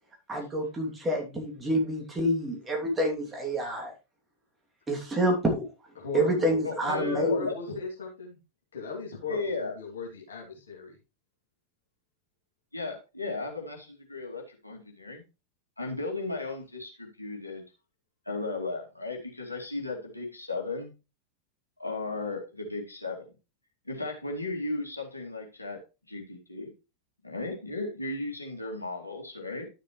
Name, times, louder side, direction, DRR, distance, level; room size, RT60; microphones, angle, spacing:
voice 1, 0.3-3.9 4.9-5.7 6.1-7.5, right 1 dB, 15° right, 1 dB, 2.8 m, -28 dB
voice 2, 6.0-6.6 7.1-8.4 8.7-11.0, left 5 dB, 65° left, -2 dB, 2.8 m, -37 dB
voice 3, 6.6-7.7 9.3-9.7 12.7-15.2 15.8-17.6 18.3-20.9 21.8-23.3 23.9-25.8 26.1-26.7 27.2-29.7, left 3 dB, 85° left, 0 dB, 2.6 m, -35 dB
12.0 x 6.7 x 3.2 m, 0.29 s
figure-of-eight pair, 90°, 0 cm